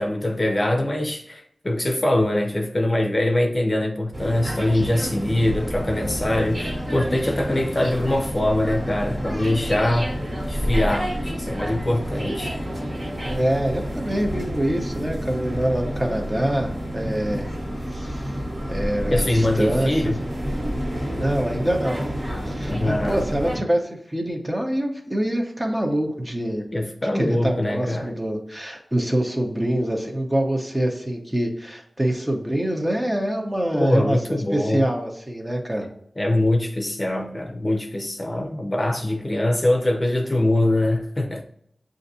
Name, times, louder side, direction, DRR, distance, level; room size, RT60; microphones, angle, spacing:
voice 1, 0.0-12.5 19.1-20.2 22.7-23.2 26.7-28.1 33.8-34.9 36.2-41.4, left 1 dB, 35° left, 2 dB, 0.6 m, -23 dB
sound 1, 4.1-23.6, equal, 50° right, 1.7 m, -29 dB
voice 2, 13.2-17.5 17.9-18.4 18.7-19.9 21.1-22.0 22.4-26.6 27.1-35.9, right 1 dB, 20° right, 2 dB, 0.9 m, -25 dB
7.2 x 2.6 x 2.7 m, 0.72 s
wide cardioid pair, 60°, 0 cm